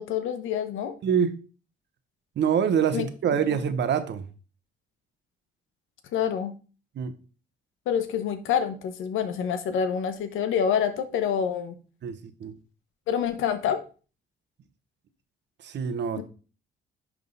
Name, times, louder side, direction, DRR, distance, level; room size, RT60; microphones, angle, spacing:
voice 1, 0.0-0.9 2.9-3.1 3.5-3.6 6.1-6.5 7.9-11.7 13.1-13.8 16.2-16.3, left 8 dB, 85° left, 1.2 m, -27 dB
voice 2, 1.0-1.3 2.4-4.2 7.0-7.1 12.0-12.6 15.6-16.2, right 7 dB, 60° right, 1.0 m, -25 dB
10.5 x 3.7 x 4.0 m
cardioid pair, 90°, 20 cm